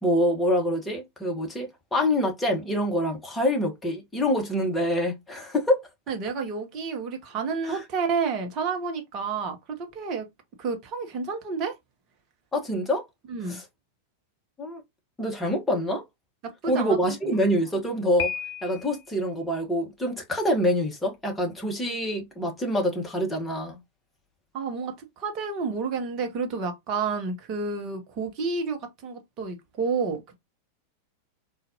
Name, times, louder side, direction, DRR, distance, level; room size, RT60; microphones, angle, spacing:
voice 1, 0.0-5.8 7.6-7.8 12.5-13.0 13.5-13.6 14.6-14.8 15.2-16.0 16.7-18.3 18.6-23.8, equal, 10° left, 1.1 m, -26 dB
voice 2, 6.1-10.3 10.6-11.7 13.3-13.6 16.6-17.0 17.2-17.3 24.5-30.2, right 5 dB, 35° right, 0.9 m, -30 dB
Piano, 18.2-19.1, left 9 dB, 50° left, 0.8 m, -33 dB
3.9 x 2.4 x 2.7 m
figure-of-eight pair, 90°, 0 cm